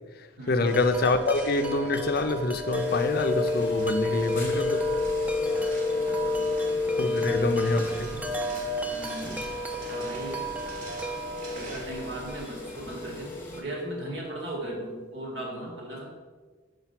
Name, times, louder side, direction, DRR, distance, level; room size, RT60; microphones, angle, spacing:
voice 1, 0.5-4.9 7.0-8.2, left 2 dB, 50° left, 0.5 m, -26 dB
Wind chime, 0.6-14.6, equal, 5° right, 0.4 m, -35 dB
sound 1, 0.7-12.5, right 1 dB, 45° right, 1.5 m, -46 dB
sound 2, 2.7-13.6, left 3 dB, 10° left, 1.1 m, -31 dB
voice 2, 6.0-6.5 7.0-8.2 8.9-9.3 9.8-10.4 11.5-16.1, right 1 dB, 65° right, 2.0 m, -38 dB
5.8 x 5.1 x 5.7 m
head